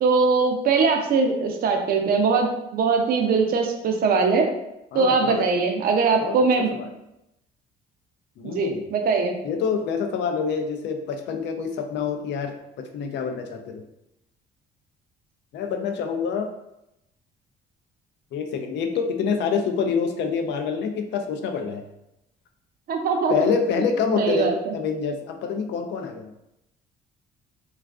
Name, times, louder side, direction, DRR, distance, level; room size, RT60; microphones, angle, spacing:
voice 1, 0.0-4.5 4.9-6.7 8.4-9.3 22.9-23.3 24.2-24.7, right 4 dB, 50° right, 3 dB, 0.5 m, -21 dB
voice 2, 4.9-5.5 6.1-6.3 6.7-6.9 8.4-8.8 9.4-12.5 12.9-13.8 15.5-16.5 18.3-21.8 23.3-26.3, left 6 dB, 65° left, 5 dB, 0.4 m, -26 dB
2.4 x 2.3 x 2.3 m, 0.86 s
cardioid pair, 90°, 20 cm